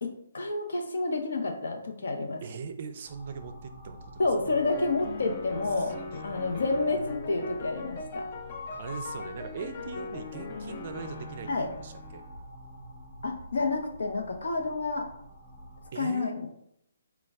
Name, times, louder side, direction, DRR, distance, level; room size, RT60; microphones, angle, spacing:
voice 1, 0.0-2.4 4.2-6.0 6.2-8.3 11.5-11.7 13.2-15.1 16.0-16.5, left 3 dB, 70° left, 4 dB, 0.8 m, -29 dB
voice 2, 2.4-4.3 5.8-6.6 8.8-12.2 15.9-16.5, right 5 dB, 45° right, 8 dB, 0.4 m, -41 dB
sound 1, 3.1-15.9, right 1 dB, 5° left, 0.8 m, -48 dB
sound 2, 4.5-12.3, left 4 dB, 40° left, 0.5 m, -40 dB
4.0 x 2.3 x 3.5 m, 0.72 s
hypercardioid pair, 160°, 0 cm